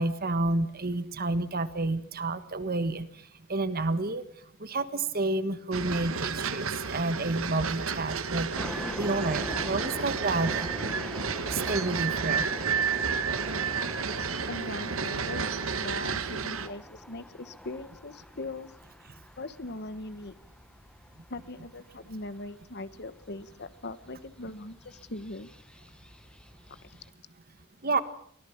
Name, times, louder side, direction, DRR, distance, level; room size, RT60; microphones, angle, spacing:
voice 1, 0.0-3.1 3.5-4.2 4.6-10.7 11.5-12.4 27.8-28.0, right 2 dB, 40° right, 12 dB, 1.5 m, -30 dB
sound 1, 5.7-16.7, right 5 dB, 65° right, 1.6 m, -31 dB
sound 2, 8.5-27.1, equal, 5° left, 1.1 m, -44 dB
voice 2, 14.5-18.7 19.4-20.4 21.3-25.5 26.8-26.9, left 2 dB, 50° left, 14 dB, 1.1 m, -40 dB
23.5 x 17.5 x 7.1 m, 0.64 s
head